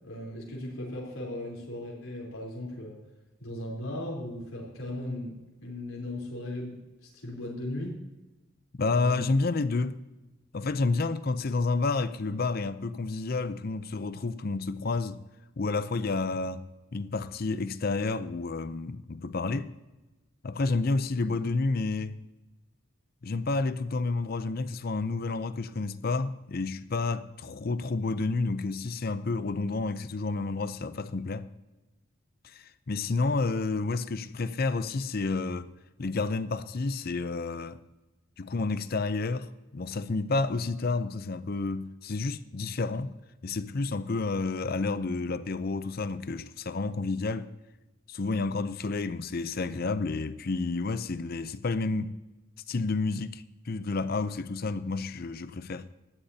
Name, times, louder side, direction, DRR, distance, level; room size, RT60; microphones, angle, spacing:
voice 1, 0.0-3.0 3.4-5.3 5.6-6.7 7.0-8.0, left 1 dB, 85° left, 3.7 m, -37 dB
voice 2, 8.8-10.0 10.5-15.2 15.6-19.7 20.4-22.2 23.2-31.5 32.4-35.7 36.0-37.8 38.4-43.2 43.4-47.5 48.1-52.2 52.7-55.9, left 3 dB, 45° left, 0.6 m, -30 dB
17.5 x 13.0 x 2.8 m
head